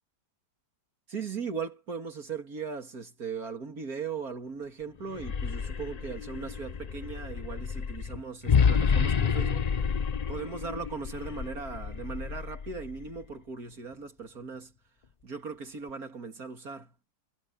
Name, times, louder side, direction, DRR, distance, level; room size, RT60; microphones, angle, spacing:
voice 1, 1.1-9.7 10.3-14.7 15.2-16.9, right 5 dB, 55° right, 3.2 m, -38 dB
sound 1, 5.0-13.2, left 6 dB, 85° left, 0.3 m, -29 dB
omnidirectional pair, 1.8 m